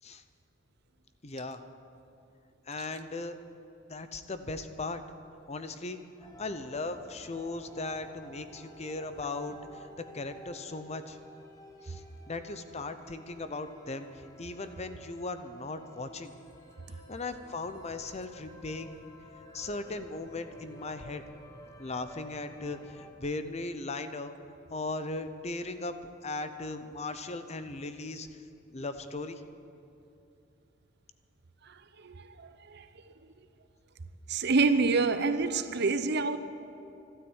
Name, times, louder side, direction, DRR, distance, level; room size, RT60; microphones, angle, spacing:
voice 1, 1.2-1.6 2.7-3.4 3.9-5.0 5.5-6.0 6.4-9.9 10.1-11.2 11.8-16.3 16.9-19.0 19.5-21.2 21.8-24.3 24.7-28.3 28.7-29.4, left 3 dB, 35° left, 0.8 m, -38 dB
sound 1, 6.2-23.1, equal, 20° left, 1.4 m, -52 dB
voice 2, 31.6-32.9 34.3-36.4, right 4 dB, 60° right, 0.7 m, -28 dB
13.0 x 12.5 x 8.1 m
head